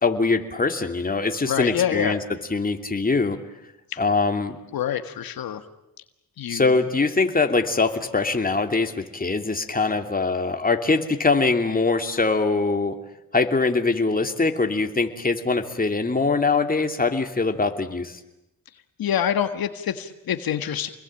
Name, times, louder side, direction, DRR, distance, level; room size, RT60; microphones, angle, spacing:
voice 1, 0.0-2.2 2.5-3.4 4.0-4.6 6.5-13.0 13.3-18.2, left 3 dB, 25° left, 5 dB, 2.8 m, -23 dB
voice 2, 1.5-2.1 3.9-4.0 4.7-5.6 6.4-6.7 19.0-20.9, left 9 dB, 80° left, 9 dB, 1.7 m, -26 dB
28.5 x 21.5 x 8.9 m, 0.90 s
cardioid pair, 85°, 35 cm